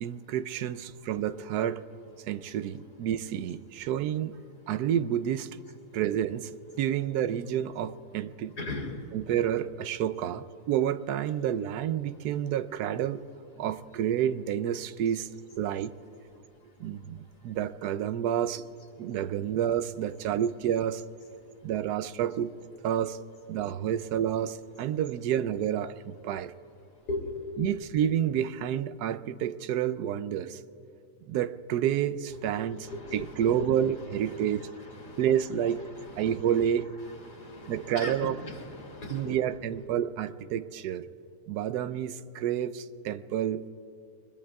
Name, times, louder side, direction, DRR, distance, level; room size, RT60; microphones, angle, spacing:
voice 1, 0.0-1.8 2.3-4.3 4.7-5.5 5.9-6.5 6.8-8.6 9.1-13.2 13.6-15.3 15.6-15.9 16.8-17.2 17.4-18.6 19.0-21.0 21.6-22.5 22.8-23.2 23.5-26.5 27.6-30.6 31.3-34.7 35.2-35.8 36.2-36.9 37.7-38.4 39.1-41.1 41.5-43.6, right 10 dB, 80° right, 13 dB, 1.1 m, -29 dB
voice 2, 8.6-8.9 27.1-27.3 32.5-33.7 34.3-35.3 35.9-36.4 37.0-39.4, left 2 dB, 75° left, -1 dB, 3.3 m, -39 dB
24.5 x 21.5 x 2.3 m, 2.7 s
omnidirectional pair, 1.7 m